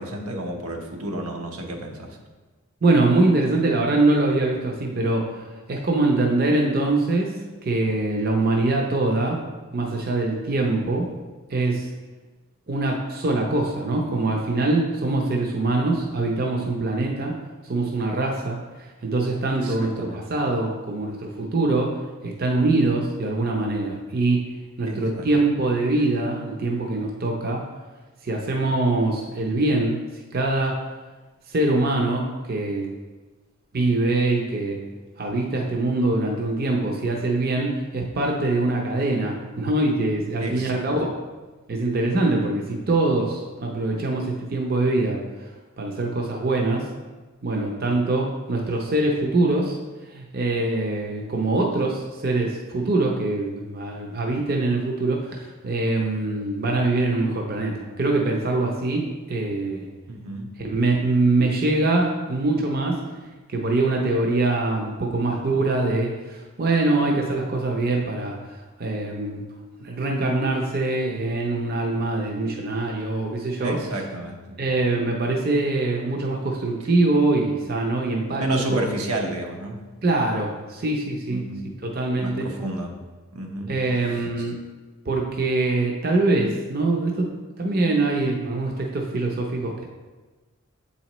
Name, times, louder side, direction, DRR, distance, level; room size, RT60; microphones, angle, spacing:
voice 1, 0.0-2.2 19.6-20.2 24.9-25.3 40.4-40.9 60.1-60.5 73.6-74.6 78.3-79.8 81.3-81.7 82.2-83.0 83.3-83.7 84.1-84.5, right 1 dB, 85° right, 2 dB, 0.9 m, -31 dB
voice 2, 2.8-5.3 5.7-7.3 7.6-9.4 9.7-11.1 11.5-11.9 12.7-17.4 17.6-21.9 22.2-24.4 24.8-27.6 28.2-30.0 30.3-30.8 31.5-32.9 33.7-34.8 35.2-41.1 41.7-45.2 45.8-46.9 47.4-49.8 50.1-59.9 60.6-63.0 63.5-68.4 68.8-69.4 69.8-73.8 74.6-78.5 78.7-78.8 80.0-81.4 81.8-82.5 83.7-84.5 85.1-87.3 87.6-89.9, right 2 dB, 45° right, 0 dB, 0.6 m, -23 dB
8.0 x 4.1 x 3.0 m, 1.3 s
head